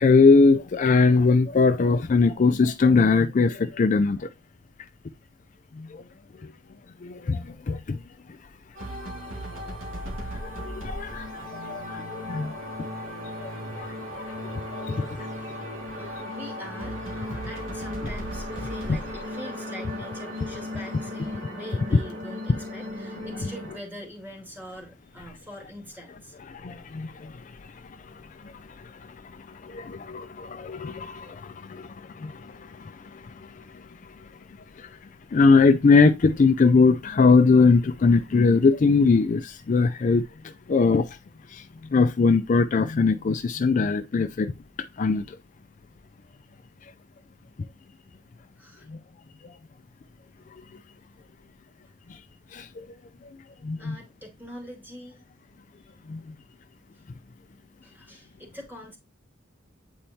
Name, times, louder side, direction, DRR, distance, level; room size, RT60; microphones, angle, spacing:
voice 1, 0.0-4.3 5.8-6.0 7.0-8.0 10.4-12.5 13.4-15.3 26.5-27.4 28.1-33.9 34.2-34.3 34.8-34.9 35.3-40.2 40.7-41.2 41.5-41.7 41.9-44.5 45.0-45.4 48.9-49.0 52.1-52.2 52.5-52.9 53.6-54.0 56.1-56.2, left 4 dB, 40° left, 0.4 m, -22 dB
sound 1, 8.8-23.8, left 1 dB, 90° right, 2.2 m, -36 dB
voice 2, 15.8-26.4 48.6-48.9 53.3-53.4 53.8-55.2 55.8-55.9 56.9-57.0 57.8-59.0, equal, 10° right, 2.1 m, -43 dB
8.7 x 4.3 x 2.7 m
head